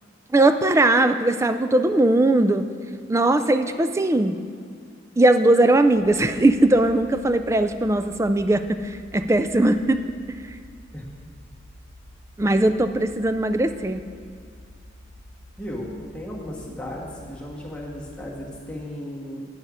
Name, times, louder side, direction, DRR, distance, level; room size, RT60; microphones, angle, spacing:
voice 1, 0.3-2.7 3.1-4.4 5.2-10.0 12.4-14.0, right 2 dB, 15° right, 10 dB, 0.3 m, -19 dB
sound 1, 5.9-18.6, left 1 dB, 40° left, 0.7 m, -48 dB
voice 2, 15.6-19.4, left 1 dB, 5° left, -4 dB, 1.4 m, -35 dB
9.6 x 8.6 x 4.9 m, 2.2 s
head